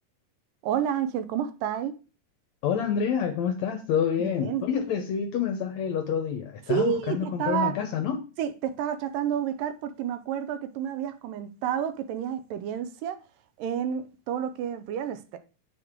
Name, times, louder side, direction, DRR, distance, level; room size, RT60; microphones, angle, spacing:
voice 1, 0.6-2.0 4.2-4.7 6.7-7.8 8.4-13.2 13.6-15.4, right 9 dB, 85° right, 2.3 m, -30 dB
voice 2, 2.6-8.2, left 7 dB, 75° left, 1.7 m, -28 dB
7.8 x 6.3 x 3.7 m
omnidirectional pair, 4.0 m